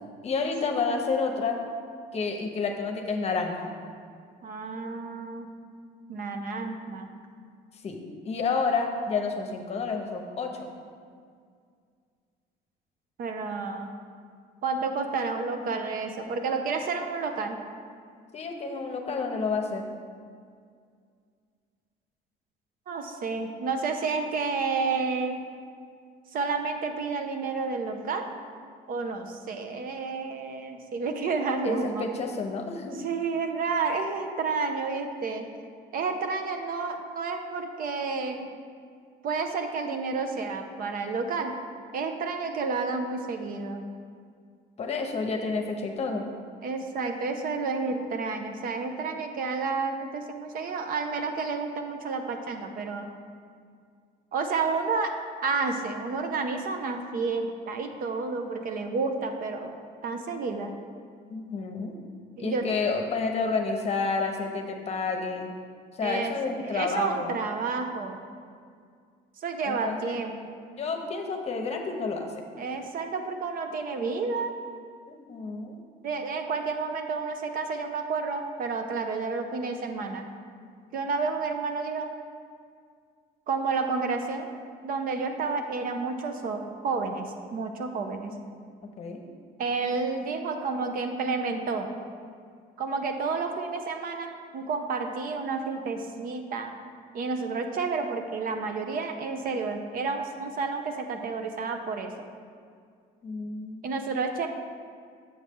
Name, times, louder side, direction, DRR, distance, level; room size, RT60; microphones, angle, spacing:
voice 1, 0.2-1.6 2.1-3.7 7.8-8.0 8.2-10.7 18.3-19.9 31.6-33.0 44.8-46.2 61.3-62.0 62.4-65.5 65.9-67.3 69.6-70.2 70.8-72.3 75.1-75.8 89.0-89.2 103.2-103.8, left 4 dB, 40° left, 3 dB, 0.8 m, -30 dB
voice 2, 4.4-5.5 6.1-7.1 13.2-13.9 14.6-17.6 22.9-25.4 26.3-28.3 28.9-32.1 33.0-35.5 35.9-38.5 39.2-41.5 41.9-43.8 46.6-53.1 54.3-55.1 55.4-59.8 60.0-60.7 62.4-62.7 66.0-66.3 66.6-68.2 69.4-70.6 72.6-74.5 76.0-80.3 80.9-82.1 83.5-84.5 84.8-88.3 89.6-91.9 92.8-96.7 97.1-102.1 103.8-104.5, right 4 dB, 60° right, 5 dB, 0.7 m, -30 dB
7.2 x 6.3 x 3.6 m, 2.1 s
cardioid pair, 110°, 17 cm